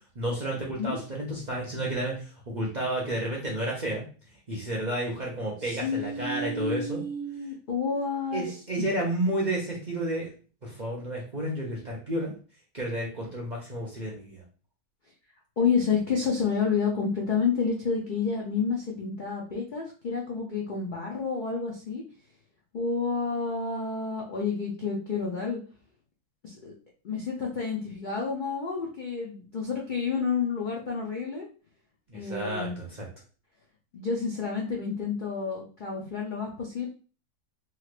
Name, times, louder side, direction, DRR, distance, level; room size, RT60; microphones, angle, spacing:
voice 1, 0.2-4.1 4.5-7.0 8.3-10.3 10.6-12.3 12.7-14.4 32.1-33.1, right 1 dB, 45° right, -3 dB, 0.6 m, -31 dB
voice 2, 5.6-8.6 15.6-22.0 22.7-25.6 26.4-26.7 27.0-31.5 32.1-32.8 33.9-36.9, left 5 dB, 60° left, -2 dB, 0.5 m, -29 dB
3.2 x 2.9 x 2.4 m, 0.37 s
omnidirectional pair, 1.6 m